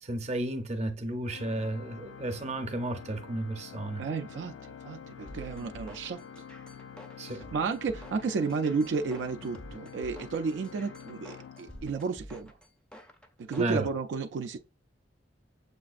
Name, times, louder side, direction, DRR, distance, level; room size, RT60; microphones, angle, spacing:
voice 1, 0.0-4.0 7.2-7.4 13.6-13.9, right 1 dB, 35° right, 0.6 m, -33 dB
Organ, 1.2-12.4, left 7 dB, 75° left, 0.3 m, -47 dB
voice 2, 4.0-4.5 4.8-6.2 7.5-12.5 13.4-14.6, right 4 dB, 75° right, 0.3 m, -32 dB
sound 1, 5.3-13.8, equal, 5° left, 0.4 m, -49 dB
6.7 x 2.4 x 2.4 m
head